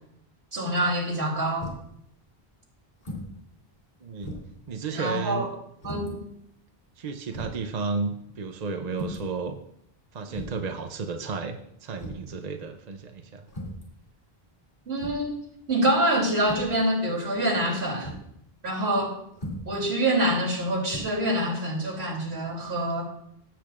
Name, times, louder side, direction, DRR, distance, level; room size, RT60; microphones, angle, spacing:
voice 1, 0.5-1.7 4.9-5.5 5.8-6.2 14.9-15.4 15.7-18.1 18.6-19.2 19.6-23.0, right 1 dB, 85° right, -3 dB, 3.2 m, -26 dB
sound 1, 1.6-2.0 3.0-3.4 3.7-3.8 4.2-4.6 5.8-6.1 6.9-7.0 7.3-7.6 8.9-9.3 10.3-10.7 12.0-12.3 13.5-13.9 15.0-15.3 16.4-16.8 18.0-18.3 19.3-19.8 20.8-21.0, equal, 50° left, 2.7 m, -37 dB
voice 2, 4.0-4.4 4.7-5.5 7.0-9.6 10.1-13.5, right 4 dB, 45° right, 6 dB, 0.7 m, -33 dB
16.0 x 8.5 x 2.5 m, 0.74 s
omnidirectional pair, 1.0 m